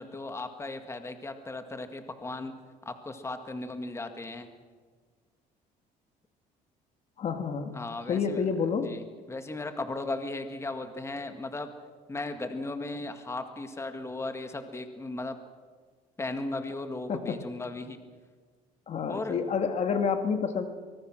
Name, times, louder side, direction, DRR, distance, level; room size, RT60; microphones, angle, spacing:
voice 1, 0.0-2.5 2.8-4.5 7.7-8.4 8.7-11.7 12.1-15.4 16.2-18.0 19.1-19.4, left 2 dB, 20° left, 7 dB, 2.0 m, -36 dB
voice 2, 7.2-7.7 8.1-8.9 17.1-17.4 18.9-20.7, left 6 dB, 45° left, 7 dB, 1.9 m, -28 dB
24.0 x 21.5 x 6.2 m, 1.5 s
cardioid pair, 110°, 15 cm